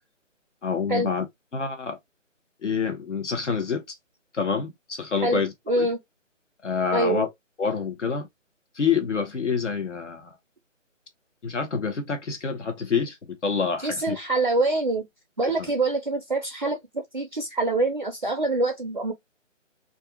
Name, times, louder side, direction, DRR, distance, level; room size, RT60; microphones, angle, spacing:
voice 1, 0.6-1.3 1.5-2.0 2.6-3.8 4.3-5.9 6.6-7.3 7.6-8.3 8.7-10.3 11.4-14.2 15.4-15.7, left 5 dB, 65° left, 1.1 m, -27 dB
voice 2, 5.2-6.0 6.9-7.3 13.8-15.0 15.4-19.1, right 2 dB, 40° right, 0.4 m, -25 dB
2.6 x 2.4 x 2.2 m
figure-of-eight pair, 160°, 39 cm